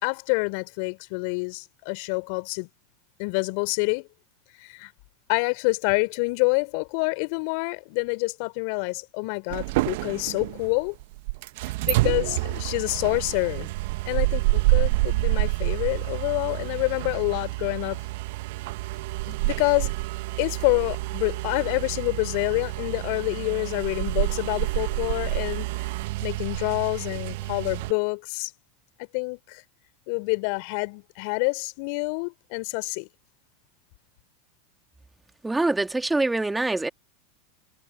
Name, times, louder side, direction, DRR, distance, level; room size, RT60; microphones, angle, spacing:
voice 1, 0.0-2.7 3.2-4.1 4.6-4.9 5.3-11.0 11.8-13.7 14.1-18.0 19.2-19.9 20.4-25.7 26.2-28.5 29.0-29.6 30.1-33.1, left 36 dB, 55° left, 3.6 m, -27 dB
sound 1, 9.5-27.9, right 22 dB, 60° right, 1.4 m, -28 dB
voice 2, 35.4-36.9, right 2 dB, 10° right, 2.5 m, -24 dB
figure-of-eight pair, 85°, 0 cm